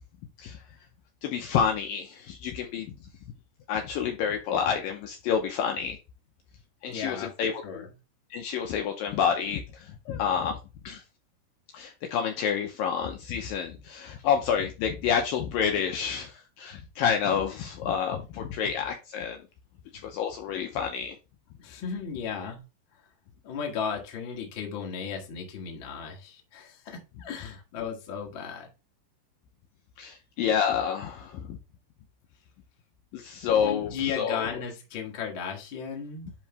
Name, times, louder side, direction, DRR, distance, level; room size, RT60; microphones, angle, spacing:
voice 1, 1.2-2.9 3.7-6.0 6.8-7.8 8.3-10.6 10.8-11.0 11.7-19.4 20.0-21.2 30.0-31.6 33.1-34.5, left 7 dB, 80° left, 2.2 m, -29 dB
voice 2, 6.9-7.9 21.6-22.6 23.4-28.7 33.6-36.3, left 6 dB, 45° left, 1.6 m, -35 dB
11.0 x 3.7 x 3.2 m
omnidirectional pair, 4.7 m